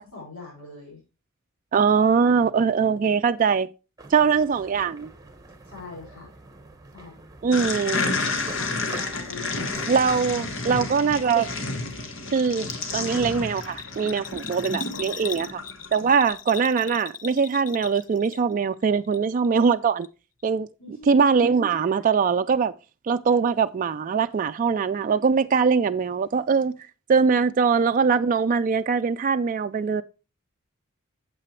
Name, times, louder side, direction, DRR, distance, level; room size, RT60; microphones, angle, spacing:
voice 1, 0.1-1.0 4.2-4.3 5.6-6.3 6.9-7.2 8.6-9.8 16.0-16.2 20.8-21.1, left 4 dB, 90° left, 5.3 m, -42 dB
voice 2, 1.7-3.7 4.1-5.1 7.4-8.0 9.9-11.5 12.3-15.6 15.9-20.1 20.4-22.7 23.1-26.7 27.1-30.0, right 5 dB, 40° right, 0.3 m, -22 dB
sound 1, 4.0-10.2, right 3 dB, 15° right, 1.2 m, -46 dB
sound 2, 7.5-16.1, left 3 dB, 65° left, 1.4 m, -30 dB
Bell, 13.6-18.7 18.9-19.7 20.0-20.1, left 8 dB, 40° left, 0.5 m, -38 dB
8.7 x 7.6 x 3.1 m
head